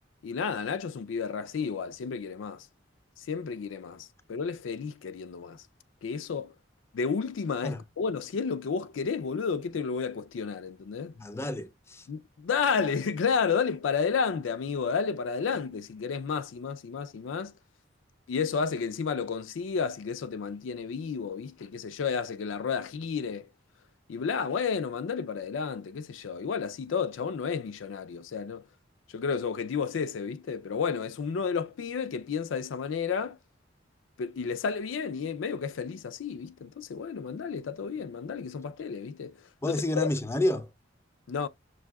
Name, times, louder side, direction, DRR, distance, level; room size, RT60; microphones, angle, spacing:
voice 1, 0.2-2.7 3.2-5.6 6.0-6.5 6.9-11.1 12.1-17.5 18.3-23.5 24.1-28.7 29.1-33.4 34.2-40.1 41.3-41.5, left 6 dB, 90° left, 0.4 m, -31 dB
voice 2, 11.2-12.1 39.6-40.7, left 1 dB, 15° left, 0.4 m, -29 dB
6.1 x 2.6 x 2.2 m
head